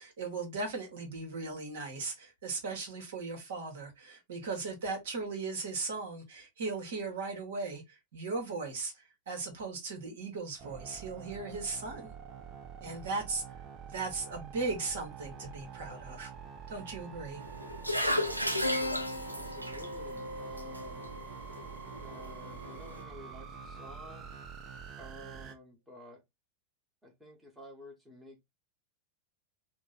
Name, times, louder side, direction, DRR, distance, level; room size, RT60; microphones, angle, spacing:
voice 1, 0.0-12.1 12.8-13.4 13.9-16.3 16.7-17.4, right 3 dB, 60° right, 1.5 m, -37 dB
sound 1, 10.6-25.5, right 7 dB, 30° right, 0.8 m, -47 dB
sound 2, 17.4-23.0, equal, 85° right, 0.7 m, -36 dB
Keyboard (musical), 18.6-23.6, left 2 dB, 80° left, 0.5 m, -40 dB
voice 2, 19.3-21.1 21.8-24.3 25.0-26.2 27.0-28.4, equal, 10° right, 1.5 m, -51 dB
3.8 x 2.5 x 3.9 m
figure-of-eight pair, 90°, 0 cm